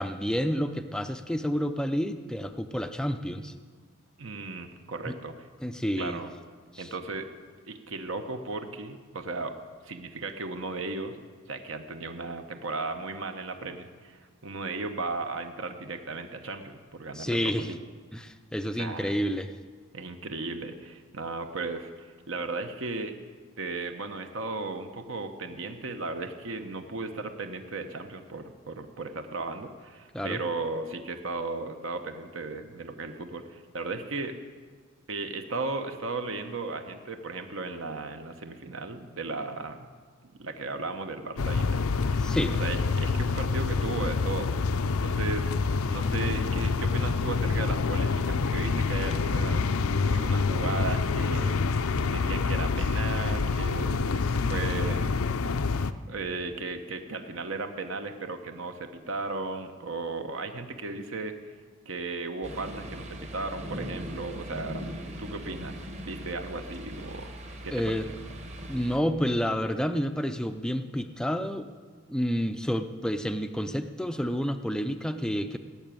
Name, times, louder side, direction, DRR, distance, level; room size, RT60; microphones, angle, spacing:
voice 1, 0.0-3.5 5.6-6.2 6.7-6.9 17.1-17.7 18.1-19.5 30.1-30.4 42.2-42.5 67.7-68.1 68.7-71.7 72.1-75.6, equal, 5° left, 8 dB, 0.4 m, -29 dB
voice 2, 4.2-5.5 6.0-6.3 6.8-7.3 7.7-9.5 9.8-11.2 11.5-17.8 18.8-19.2 19.9-23.1 23.6-34.4 35.1-39.9 40.4-42.2 42.6-44.5 45.0-45.5 45.9-49.8 50.1-55.2 56.1-61.3 61.9-64.8 65.2-67.3 67.6-68.0, right 3 dB, 60° right, 7 dB, 0.9 m, -36 dB
sound 1, 41.4-55.9, left 4 dB, 70° left, 0.6 m, -27 dB
sound 2, 62.4-69.0, equal, 30° right, 1.2 m, -40 dB
17.5 x 6.9 x 9.0 m, 1.6 s
head